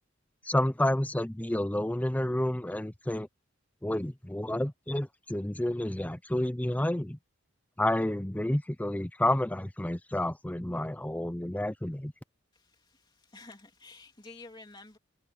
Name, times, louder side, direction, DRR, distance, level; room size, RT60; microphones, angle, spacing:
voice 1, 0.4-3.3 3.8-7.2 7.8-12.1, left 1 dB, 10° left, 0.6 m, -30 dB
voice 2, 12.5-15.0, left 3 dB, 25° left, 3.0 m, -51 dB
head